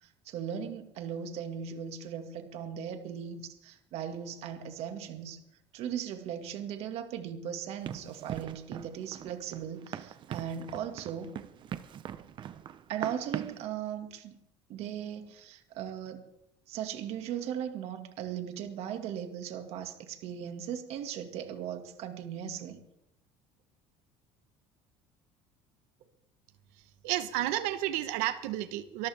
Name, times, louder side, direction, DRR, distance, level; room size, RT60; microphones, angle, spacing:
voice 1, 0.0-5.4 5.7-11.3 12.9-14.4 14.7-16.3 16.7-22.8, right 9 dB, 65° right, 6 dB, 2.1 m, -38 dB
Run, 7.8-13.7, right 10 dB, 45° right, 0.9 m, -41 dB
voice 2, 27.0-29.1, right 14 dB, 80° right, 11 dB, 1.2 m, -31 dB
24.0 x 13.5 x 3.6 m, 0.81 s
cardioid pair, 120°, 11 cm